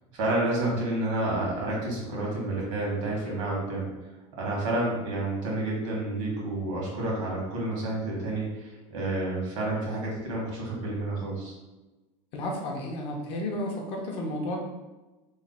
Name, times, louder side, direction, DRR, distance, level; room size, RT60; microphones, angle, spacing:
voice 1, 0.1-3.9 4.3-11.5, right 2 dB, 75° right, -3 dB, 1.4 m, -29 dB
voice 2, 12.3-14.6, left 1 dB, 35° left, 0 dB, 0.5 m, -32 dB
3.1 x 2.1 x 4.0 m, 1.1 s
supercardioid pair, 170°, 16 cm